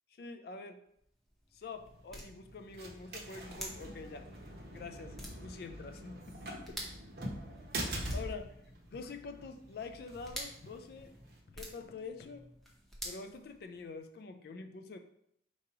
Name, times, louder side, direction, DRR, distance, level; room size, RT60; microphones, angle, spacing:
voice 1, 0.2-0.8 1.5-4.3 4.7-6.8 8.1-8.5 8.9-11.1 11.5-12.5 13.0-15.0, left 4 dB, 55° left, 7 dB, 0.3 m, -46 dB
sound 1, 0.9-14.1, equal, ahead, 0.7 m, -51 dB
sound 2, 1.8-11.4, right 1 dB, 55° right, 0.8 m, -44 dB
3.7 x 3.0 x 4.6 m, 0.72 s
head